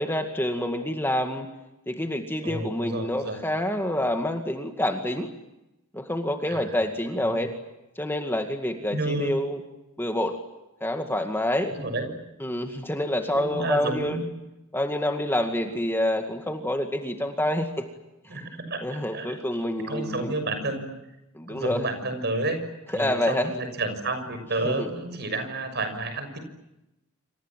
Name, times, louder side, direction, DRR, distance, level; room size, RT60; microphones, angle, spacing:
voice 1, 0.0-1.5 1.9-5.3 5.9-7.6 8.0-9.6 10.0-10.4 10.8-11.8 12.4-14.2 14.7-17.9 18.2-18.4 18.8-20.3 21.3-21.9 22.9-23.5 24.6-24.9, left 1 dB, 10° left, 5 dB, 2.1 m, -27 dB
voice 2, 2.4-3.4 6.5-6.7 7.2-7.4 8.9-9.3 11.8-12.1 13.3-14.2 18.3-19.4 19.9-21.0 21.5-26.4, right 2 dB, 50° right, 8 dB, 6.5 m, -30 dB
28.0 x 27.5 x 7.6 m, 0.93 s
head